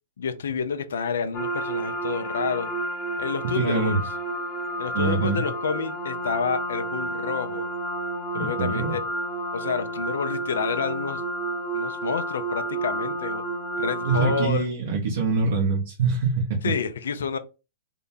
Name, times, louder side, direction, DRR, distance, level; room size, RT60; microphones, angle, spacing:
voice 1, 0.2-2.7 3.2-4.0 4.8-7.7 8.3-9.0 9.5-11.2 11.7-13.4 13.8-14.7 16.6-17.4, left 6 dB, 80° left, 0.5 m, -29 dB
sound 1, 1.3-14.5, right 1 dB, 30° left, 0.8 m, -30 dB
voice 2, 3.4-4.0 4.9-5.4 8.3-9.0 14.0-16.7, right 4 dB, 70° right, 1.2 m, -24 dB
3.8 x 2.2 x 3.9 m
hypercardioid pair, 130°, 0 cm